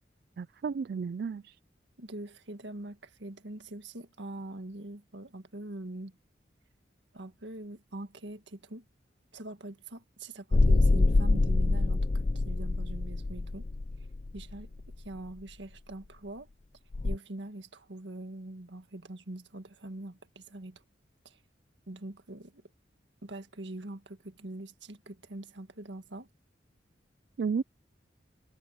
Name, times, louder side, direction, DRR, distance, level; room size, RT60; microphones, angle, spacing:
voice 1, 0.4-1.5 27.4-27.6, right 5 dB, 55° right, 0.3 m, -32 dB
voice 2, 2.0-6.1 7.1-8.8 9.3-13.7 14.3-14.7 15.0-16.5 17.0-20.8 21.3-21.4 21.9-22.6 23.2-26.3, right 1 dB, 75° right, 1.8 m, -43 dB
sound 1, 10.5-15.0 16.9-17.2, left 2 dB, 40° left, 0.5 m, -25 dB
head